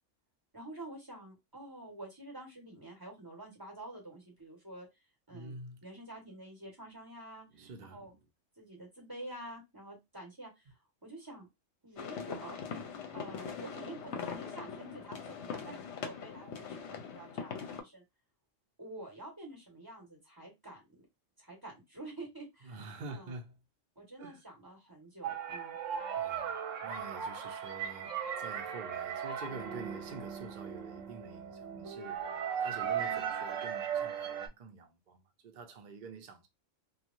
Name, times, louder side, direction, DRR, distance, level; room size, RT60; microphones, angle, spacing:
voice 1, 0.5-4.9 5.3-5.5 5.8-8.2 8.6-10.7 11.0-11.5 11.8-12.6 13.1-18.0 18.8-20.8 21.4-23.3 24.0-25.8, right 1 dB, 20° right, 1.2 m, -48 dB
voice 2, 5.3-5.8 7.5-8.2 22.6-23.6 24.2-24.4 26.1-26.6 26.8-32.2 32.6-36.5, right 3 dB, 50° right, 0.6 m, -47 dB
sound 1, 12.0-17.8, left 6 dB, 70° left, 0.9 m, -41 dB
sound 2, 25.2-34.5, right 8 dB, 75° right, 1.0 m, -37 dB
3.0 x 2.3 x 2.5 m
omnidirectional pair, 1.3 m